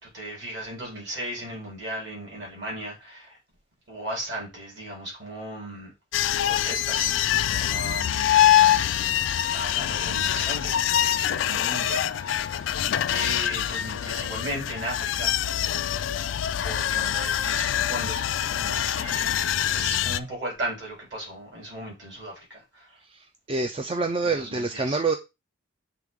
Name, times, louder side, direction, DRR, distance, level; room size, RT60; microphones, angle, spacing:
voice 1, 0.0-3.4 3.9-5.9 6.4-9.1 9.5-12.8 13.1-15.4 16.6-18.3 18.6-22.9 24.2-25.0, right 1 dB, 60° right, 3.8 m, -36 dB
sound 1, 6.1-20.2, left 11 dB, 70° left, 0.3 m, -24 dB
voice 2, 23.5-25.2, right 3 dB, 25° right, 0.4 m, -26 dB
7.6 x 3.5 x 3.6 m
head